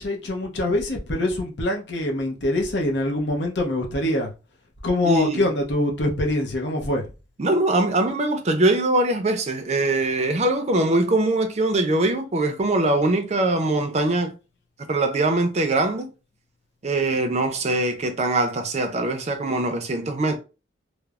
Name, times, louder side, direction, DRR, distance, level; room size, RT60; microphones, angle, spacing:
voice 1, 0.0-4.3 4.8-7.1, left 1 dB, 75° left, 0.7 m, -24 dB
voice 2, 5.0-5.5 7.4-14.3 14.9-16.1 16.8-20.4, right 2 dB, 35° right, 0.4 m, -22 dB
3.1 x 2.0 x 2.4 m
head